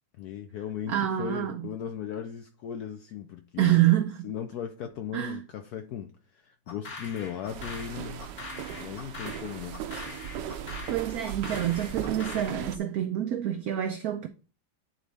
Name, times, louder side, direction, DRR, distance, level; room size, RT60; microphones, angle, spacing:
voice 1, 0.2-3.8 4.2-8.3 8.8-9.8, left 9 dB, 75° left, 0.8 m, -37 dB
voice 2, 0.9-1.6 3.6-4.2 5.1-5.4 10.9-14.3, right 12 dB, 90° right, 0.8 m, -27 dB
sound 1, 6.7-12.6, left 3 dB, 40° left, 1.4 m, -43 dB
sound 2, 7.5-12.8, right 9 dB, 70° right, 1.1 m, -37 dB
9.3 x 4.0 x 3.3 m
omnidirectional pair, 2.2 m